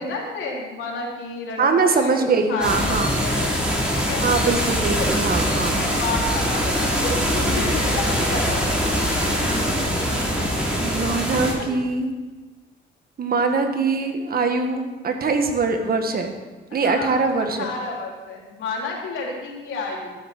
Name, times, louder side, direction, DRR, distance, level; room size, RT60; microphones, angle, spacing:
voice 1, 0.0-3.5 3.9-4.2 5.0-8.7 9.3-9.6 11.6-11.7 16.7-20.1, left 3 dB, 80° left, -2 dB, 3.3 m, -31 dB
voice 2, 1.6-3.1 4.2-5.8 10.8-12.1 13.2-16.3 16.7-17.7, right 4 dB, 50° right, 5 dB, 1.7 m, -22 dB
sound 1, 2.6-11.5, equal, 5° right, 3.7 m, -23 dB
13.5 x 7.7 x 6.1 m, 1.3 s
cardioid pair, 90°, 20 cm